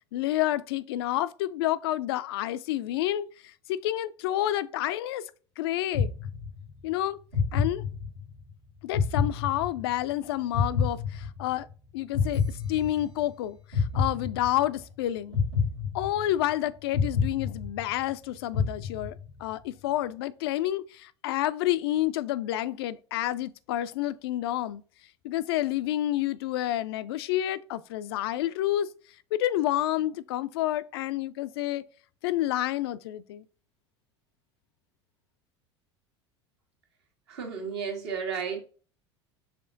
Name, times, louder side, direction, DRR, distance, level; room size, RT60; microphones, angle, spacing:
voice 1, 0.1-5.2 5.6-6.1 6.8-7.2 7.5-7.8 8.8-11.7 11.9-15.4 15.9-24.8 25.2-28.9 29.3-31.8 32.2-33.4, left 13 dB, 60° left, 0.4 m, -29 dB
sound 1, 5.9-6.8 7.3-8.4 8.9-10.1 10.5-11.7 12.1-13.3 13.7-14.8 15.3-16.5 16.9-18.1 18.5-19.4, left 5 dB, 80° right, 1.9 m, -28 dB
voice 2, 37.3-38.6, right 6 dB, 65° right, 1.5 m, -33 dB
5.7 x 3.6 x 2.5 m
figure-of-eight pair, 75°, 15 cm